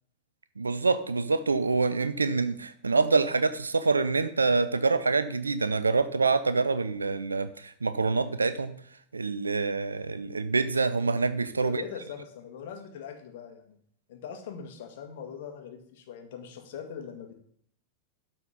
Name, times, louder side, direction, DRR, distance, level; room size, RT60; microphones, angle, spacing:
voice 1, 0.6-8.7 9.1-11.8, right 4 dB, 75° right, 12 dB, 0.5 m, -26 dB
voice 2, 11.6-13.8 14.1-17.3, left 7 dB, 55° left, 5 dB, 1.7 m, -41 dB
12.5 x 4.3 x 5.1 m, 0.64 s
figure-of-eight pair, 90°, 0 cm